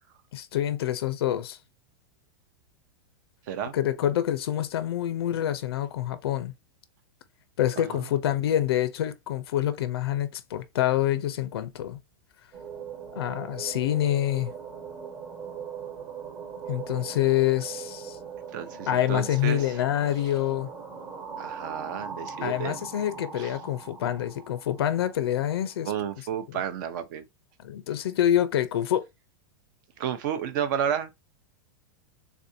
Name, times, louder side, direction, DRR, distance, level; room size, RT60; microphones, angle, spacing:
voice 1, 0.3-1.6 3.7-6.5 7.6-12.0 13.2-14.5 16.7-18.2 18.9-20.7 22.4-25.9 26.5-26.6 27.6-29.1, left 12 dB, 90° left, 0.5 m, -26 dB
voice 2, 7.8-8.1 18.5-19.8 21.4-22.8 23.4-23.6 25.8-27.2 30.0-31.1, right 8 dB, 50° right, 0.6 m, -31 dB
sound 1, 12.5-25.7, right 6 dB, 25° right, 1.1 m, -40 dB
3.5 x 2.5 x 2.6 m
supercardioid pair, 160°, 13 cm